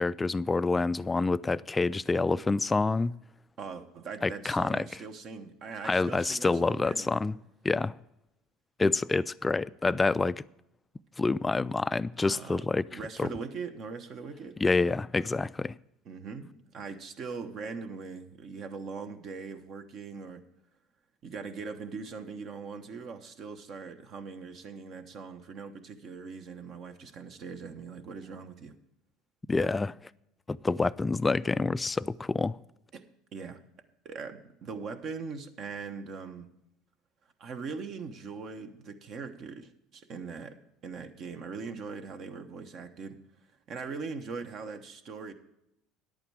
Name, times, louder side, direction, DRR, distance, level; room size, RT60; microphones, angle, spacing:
voice 1, 0.0-3.1 4.2-4.9 5.8-7.4 7.6-7.9 8.8-10.4 11.2-13.3 14.6-15.8 29.5-29.9 30.5-32.6, left 3 dB, 15° left, 0.3 m, -27 dB
voice 2, 3.6-7.2 12.3-12.6 12.9-14.6 16.0-20.4 21.2-28.7 32.9-33.0 33.3-33.6 34.0-36.5 37.4-40.6 40.8-43.2 43.7-45.3, right 5 dB, 50° right, 1.1 m, -41 dB
10.5 x 8.7 x 4.8 m
supercardioid pair, 105°, 0 cm